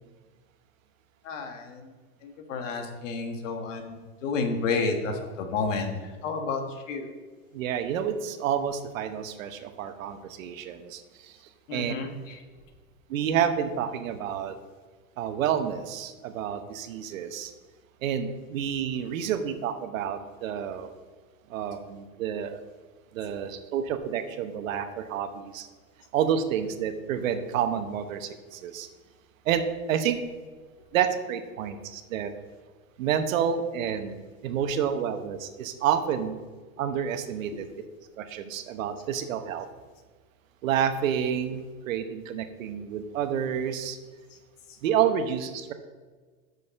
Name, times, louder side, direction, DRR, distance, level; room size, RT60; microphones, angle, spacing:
voice 1, 1.2-1.9 2.2-5.9 6.2-7.1 11.7-12.4, left 4 dB, 60° left, 4 dB, 1.5 m, -30 dB
voice 2, 7.5-11.4 11.7-11.9 13.1-14.6 15.2-17.5 18.0-20.9 21.5-22.6 23.1-25.7 26.1-28.9 29.4-30.2 30.9-32.3 33.0-36.4 36.8-37.7 38.2-39.7 40.6-44.0 44.8-45.7, right 8 dB, 65° right, 8 dB, 1.0 m, -29 dB
6.4 x 5.4 x 7.1 m, 1.4 s
supercardioid pair, 160°, 42 cm